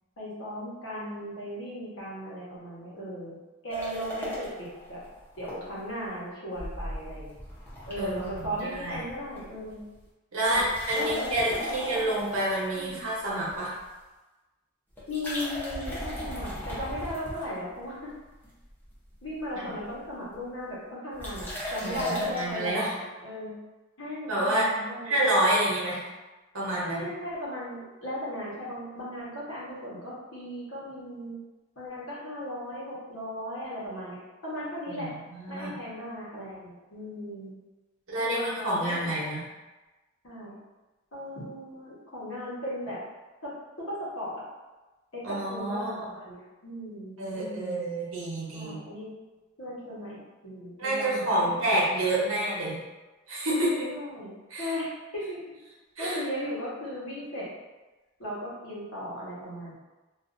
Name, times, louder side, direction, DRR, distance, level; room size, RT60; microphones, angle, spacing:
voice 1, 0.2-3.4 3.6-5.0 5.4-7.4 7.9-9.9 10.5-10.6 10.9-12.0 12.8-13.0 15.1-17.9 19.2-23.5 24.0-25.2 26.9-31.4 31.8-35.1 35.5-37.5 38.2-39.1 40.2-40.6 41.1-43.0 43.4-43.5 43.8-44.4 45.1-47.8 48.5-49.1 49.6-51.8 52.2-52.5 53.6-54.3 54.6-54.9 55.1-55.4 56.0-57.5 58.2-59.7, equal, 85° left, -8 dB, 1.1 m, -37 dB
sound 1, 3.7-5.5 5.9-6.0 6.6-9.4 9.7-10.0 10.4-13.8 15.0-18.0 18.4-18.9 19.2-19.3 19.5-20.1 21.2-22.5, left 1 dB, 10° left, 0.7 m, -37 dB
voice 2, 8.0-9.0 10.3-13.7 19.5-19.7 21.8-22.9 24.3-24.7 25.0-26.0 26.5-27.0 34.9-35.7 38.1-39.4 45.2-46.1 47.2-48.9 50.8-52.8 53.3-53.9 54.5-54.7 56.0-56.2, right 1 dB, 80° right, -6 dB, 0.9 m, -28 dB
2.6 x 2.4 x 2.5 m, 1.1 s
head